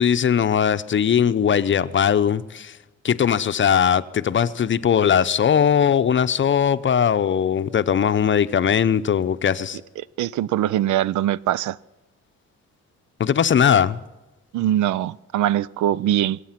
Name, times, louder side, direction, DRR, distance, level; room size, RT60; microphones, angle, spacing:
voice 1, 0.0-2.8 3.0-9.8 13.2-14.0, left 8 dB, 40° left, 0.7 m, -19 dB
voice 2, 10.2-11.8 14.5-16.4, right 12 dB, 75° right, 0.5 m, -22 dB
25.0 x 8.4 x 5.9 m
cardioid pair, 90°, 30 cm